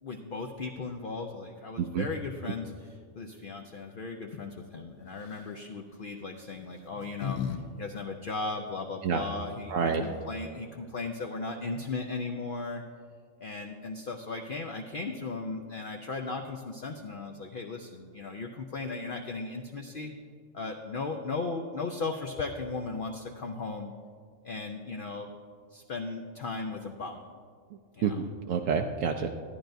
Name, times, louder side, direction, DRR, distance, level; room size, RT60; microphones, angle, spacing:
voice 1, 0.0-12.8 13.4-20.1 20.5-23.9 24.4-25.3 25.7-27.2 28.0-28.2, left 3 dB, 55° left, 2 dB, 0.6 m, -37 dB
sound 1, 5.1-5.5 6.5-7.6 7.9-8.0 9.6-9.7 9.9-10.4, left 8 dB, 75° left, 1.1 m, -36 dB
voice 2, 9.7-10.0 28.0-29.3, right 6 dB, 75° right, 3 dB, 0.9 m, -28 dB
14.0 x 10.0 x 2.6 m, 2.1 s
omnidirectional pair, 1.4 m